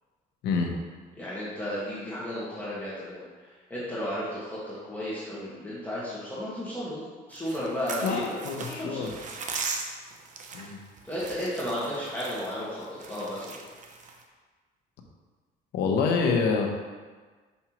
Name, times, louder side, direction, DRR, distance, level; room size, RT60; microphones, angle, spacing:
voice 1, 1.2-7.0 7.3-8.2 8.6-9.1 11.0-13.6, equal, 10° left, -9 dB, 1.6 m, -34 dB
sound 1, 7.3-14.2, right 4 dB, 45° right, 0.7 m, -39 dB
voice 2, 8.0-9.1 10.5-10.8 15.7-16.7, left 5 dB, 80° left, 2 dB, 0.9 m, -26 dB
5.7 x 5.5 x 3.0 m, 1.4 s
cardioid pair, 110°, 17 cm